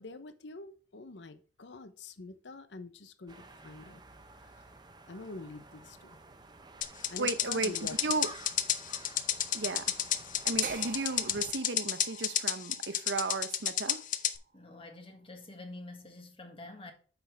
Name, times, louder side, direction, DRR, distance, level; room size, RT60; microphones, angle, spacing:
voice 1, 0.0-4.0 5.1-6.2 7.1-8.0, left 3 dB, 80° left, 0.8 m, -45 dB
sound 1, 3.3-11.5, right 3 dB, 25° right, 0.9 m, -52 dB
sound 2, 6.8-14.4, left 11 dB, 50° left, 0.7 m, -31 dB
voice 2, 7.2-8.3 9.5-9.9 10.4-14.0, right 3 dB, 85° right, 0.8 m, -34 dB
sound 3, 10.6-14.7, right 6 dB, 50° right, 1.4 m, -46 dB
voice 3, 14.5-16.9, left 2 dB, 30° left, 1.6 m, -47 dB
8.0 x 6.0 x 3.4 m
head